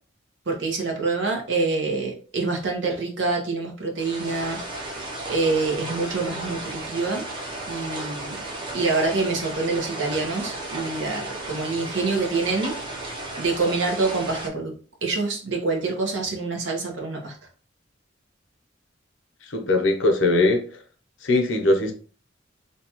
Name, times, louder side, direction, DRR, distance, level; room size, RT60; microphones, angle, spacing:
voice 1, 0.5-4.6 5.3-7.2 7.7-12.7 13.4-14.7 15.0-17.4, right 3 dB, 70° right, 0.9 m, -26 dB
sound 1, 4.0-14.5, right 2 dB, 25° right, 0.6 m, -34 dB
voice 2, 19.4-20.6 21.2-21.9, left 2 dB, 80° left, 0.7 m, -20 dB
2.7 x 2.3 x 2.9 m
head